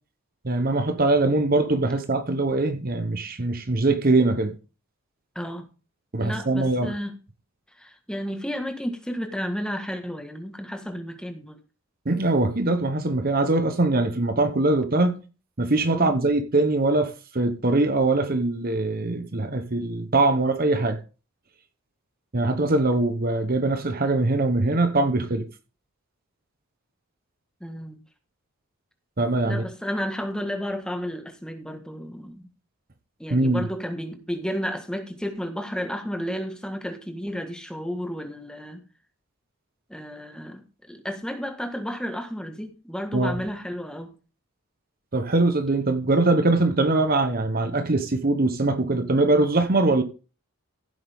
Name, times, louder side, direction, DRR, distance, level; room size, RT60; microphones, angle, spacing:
voice 1, 0.4-4.5 6.1-6.9 12.1-15.2 15.6-21.0 22.3-25.5 29.2-29.6 33.3-33.6 43.1-43.4 45.1-50.0, right 2 dB, 40° right, 1.0 m, -22 dB
voice 2, 5.3-5.7 6.2-7.2 7.7-11.6 15.9-16.1 27.6-28.0 29.4-32.5 33.2-38.8 39.9-44.1, equal, 5° left, 1.5 m, -32 dB
15.0 x 8.0 x 3.6 m
head